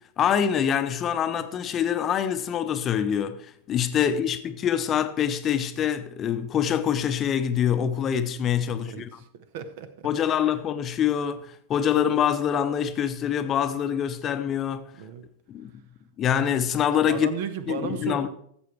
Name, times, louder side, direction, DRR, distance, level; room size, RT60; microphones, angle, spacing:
voice 1, 0.2-9.1 10.0-14.9 15.5-15.7 16.2-17.3 17.7-18.3, left 9 dB, 30° left, 0.8 m, -25 dB
voice 2, 8.8-10.5 15.0-15.3 17.1-18.3, right 7 dB, 50° right, 1.0 m, -35 dB
14.5 x 7.3 x 4.5 m
figure-of-eight pair, 90°, 0 cm